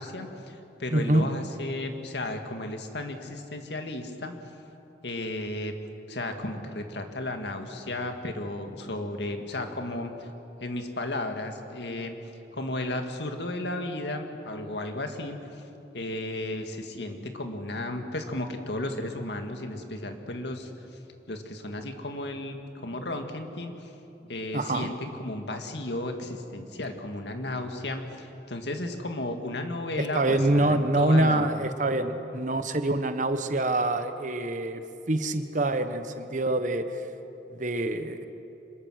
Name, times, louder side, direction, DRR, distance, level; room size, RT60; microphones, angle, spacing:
voice 1, 0.0-4.3 5.0-5.7 6.1-10.3 10.6-12.2 12.5-15.4 15.9-20.7 21.3-23.9 24.3-31.5, left 1 dB, 75° left, 5 dB, 2.0 m, -34 dB
voice 2, 0.9-1.3 24.5-24.9 30.0-34.8 35.1-36.8 37.5-38.2, right 2 dB, 45° right, 9 dB, 1.1 m, -25 dB
26.0 x 22.0 x 6.4 m, 2.9 s
head